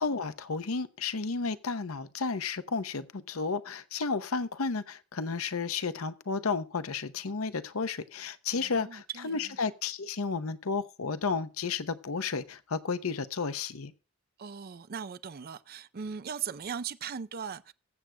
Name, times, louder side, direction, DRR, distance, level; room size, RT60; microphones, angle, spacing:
voice 1, 0.0-13.9, left 4 dB, 85° left, 0.8 m, -32 dB
voice 2, 8.5-9.6 14.4-17.7, right 7 dB, 45° right, 0.5 m, -39 dB
21.5 x 7.6 x 2.2 m
head